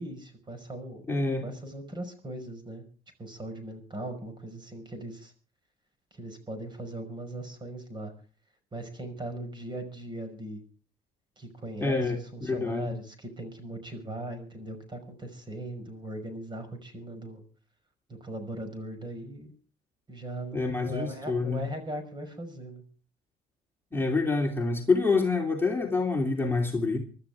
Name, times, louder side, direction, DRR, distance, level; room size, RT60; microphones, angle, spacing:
voice 1, 0.0-1.1 1.4-2.8 3.2-5.3 6.1-8.1 8.7-10.6 11.4-17.4 18.1-19.6 20.1-22.8, right 1 dB, 25° right, 5.5 m, -39 dB
voice 2, 1.1-1.4 11.8-12.9 20.5-21.7 23.9-27.0, left 3 dB, 15° left, 2.9 m, -27 dB
25.0 x 13.0 x 3.6 m
cardioid pair, 110°, 17 cm